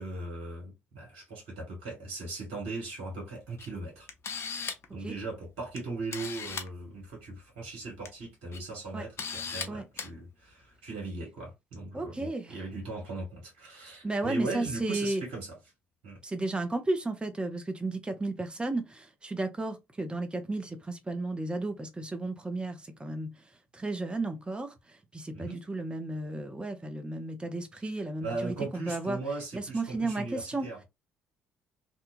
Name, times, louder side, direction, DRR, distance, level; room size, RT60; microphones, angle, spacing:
voice 1, 0.0-4.1 4.4-15.5 16.0-16.2 25.3-25.6 28.2-30.8, right 3 dB, 70° right, 1.2 m, -39 dB
Camera, 3.6-3.7 4.1-4.9 5.8-5.9 6.1-6.7 7.8-8.1 8.5-8.6 9.2-9.7 10.0-10.1, left 6 dB, 45° left, 0.6 m, -36 dB
voice 2, 11.9-12.6 14.0-15.2 16.2-29.2 29.5-30.7, right 2 dB, 15° right, 0.6 m, -33 dB
2.7 x 2.3 x 2.4 m
figure-of-eight pair, 50°, 6 cm